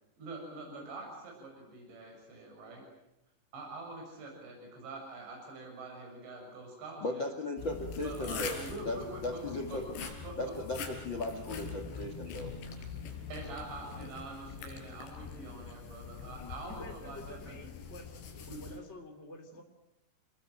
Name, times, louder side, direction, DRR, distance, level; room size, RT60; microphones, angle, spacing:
voice 1, 0.2-2.9 3.5-7.3 8.0-9.8 10.2-10.5 12.8-12.9 13.3-17.6 18.5-18.7, right 2 dB, 75° right, 1 dB, 9.0 m, -45 dB
voice 2, 7.0-9.9 10.4-12.6, left 2 dB, 50° left, 8 dB, 1.4 m, -37 dB
sound 1, 7.6-18.8, left 5 dB, 75° left, 5.7 m, -43 dB
voice 3, 16.6-18.1 18.3-19.6, left 1 dB, 20° left, 3 dB, 2.5 m, -49 dB
29.5 x 21.0 x 9.0 m, 0.90 s
omnidirectional pair, 5.1 m